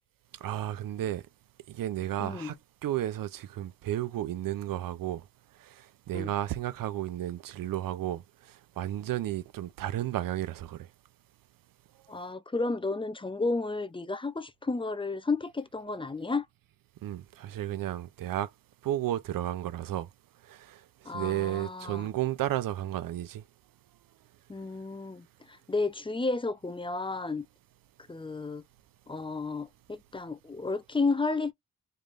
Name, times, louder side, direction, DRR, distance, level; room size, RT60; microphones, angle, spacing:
voice 1, 0.3-1.3 1.7-2.6 2.8-5.3 5.5-10.9 17.0-18.5 18.8-20.1 20.4-23.4, right 13 dB, 85° right, 0.5 m, -33 dB
voice 2, 2.2-2.5 6.1-6.3 12.1-16.5 21.0-22.1 24.5-27.5 28.1-28.6 29.1-31.5, left 3 dB, 15° left, 0.4 m, -32 dB
3.4 x 3.3 x 2.5 m
cardioid pair, 90°, 33 cm